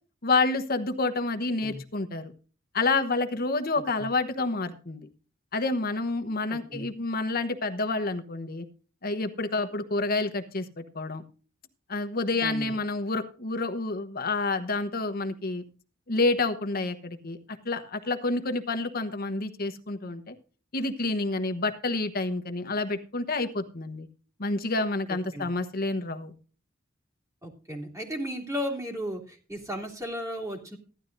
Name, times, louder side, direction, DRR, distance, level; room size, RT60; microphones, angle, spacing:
voice 1, 0.2-2.3 2.7-5.1 5.5-8.7 9.0-11.2 11.9-15.6 16.1-17.4 17.6-20.3 20.7-24.1 24.4-26.3, left 3 dB, 45° left, 8 dB, 1.1 m, -28 dB
voice 2, 6.5-6.8 12.4-12.8 25.1-25.5 27.4-30.8, equal, 15° right, 1 dB, 3.0 m, -35 dB
15.5 x 12.0 x 2.6 m, 0.38 s
head